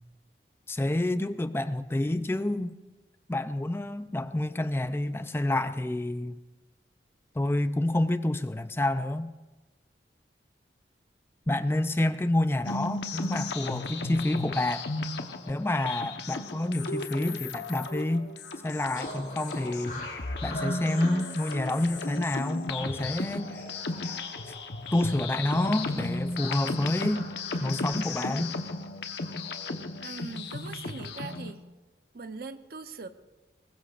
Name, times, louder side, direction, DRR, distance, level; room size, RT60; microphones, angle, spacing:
voice 1, 0.7-2.8 3.3-6.4 7.4-9.3 11.5-14.9 15.5-18.3 18.6-23.6 24.9-27.2 27.6-28.6, left 1 dB, 15° left, 0.4 m, -28 dB
sound 1, 12.6-31.5, left 3 dB, 70° left, 1.0 m, -35 dB
sound 2, 18.9-28.1, left 1 dB, 50° left, 6.1 m, -43 dB
voice 2, 30.0-31.6 32.1-33.1, right 4 dB, 55° right, 0.8 m, -41 dB
22.0 x 19.5 x 2.5 m
head